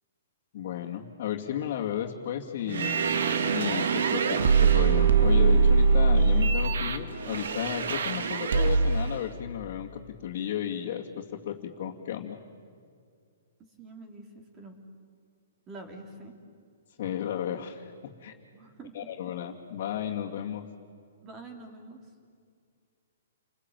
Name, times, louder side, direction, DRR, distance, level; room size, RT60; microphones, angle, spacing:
voice 1, 0.5-2.9 3.5-12.4 17.0-18.3 18.9-20.6, left 10 dB, 50° left, -3 dB, 2.4 m, -34 dB
sound 1, 2.7-9.1, right 5 dB, 75° right, 1.9 m, -23 dB
voice 2, 13.8-14.8 15.7-16.4 18.5-19.1 21.2-22.1, right 2 dB, 20° right, 4 dB, 3.8 m, -46 dB
30.0 x 21.5 x 9.2 m, 2.2 s
hypercardioid pair, 155°, 0 cm